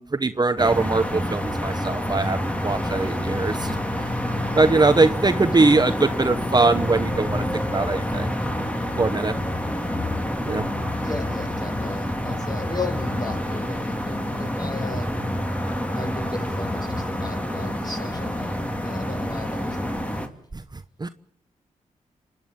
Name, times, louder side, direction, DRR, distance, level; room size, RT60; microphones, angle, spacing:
voice 1, 0.0-2.4 2.6-4.0 4.6-7.4 7.7-8.3 9.0-9.3 10.4-10.6 21.0-21.1, right 3 dB, 30° right, 12 dB, 0.9 m, -21 dB
sound 1, 0.6-20.3, left 1 dB, 10° left, 2.8 m, -27 dB
voice 2, 11.0-15.2 15.9-20.2, left 2 dB, 30° left, 7 dB, 5.1 m, -36 dB
27.5 x 10.5 x 9.1 m, 0.69 s
supercardioid pair, 50°, 14 cm